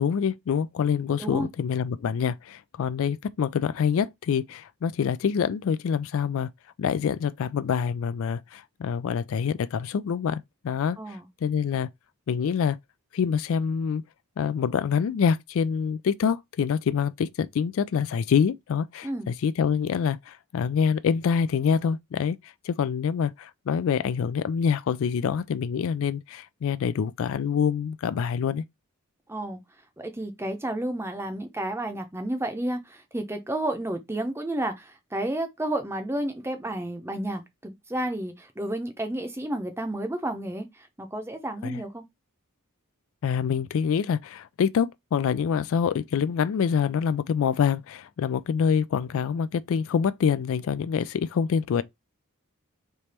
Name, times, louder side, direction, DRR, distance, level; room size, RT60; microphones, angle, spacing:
voice 1, 0.0-6.5 6.8-11.9 12.3-12.8 13.1-14.0 14.4-28.6 41.6-41.8 43.2-51.8, left 7 dB, 60° left, 0.3 m, -26 dB
voice 2, 11.0-11.3 19.0-19.3 29.3-29.6 30.0-40.7 41.0-42.0, right 1 dB, 10° right, 0.7 m, -31 dB
3.4 x 3.1 x 4.2 m
head